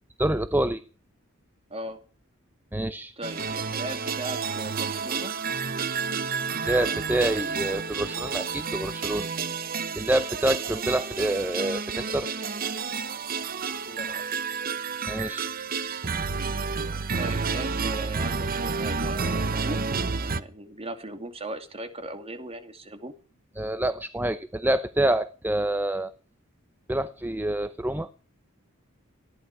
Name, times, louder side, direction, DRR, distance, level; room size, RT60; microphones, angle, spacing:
voice 1, 0.2-0.8 2.7-3.1 6.7-9.3 10.0-12.3 15.1-15.5 23.6-26.1 26.9-28.1, right 1 dB, 10° right, 12 dB, 0.7 m, -27 dB
voice 2, 3.2-5.3 13.9-14.2 17.1-23.1, right 2 dB, 30° right, 9 dB, 2.5 m, -38 dB
sound 1, 3.2-20.4, right 5 dB, 45° right, 0.9 m, -30 dB
19.5 x 14.5 x 4.8 m, 0.38 s
head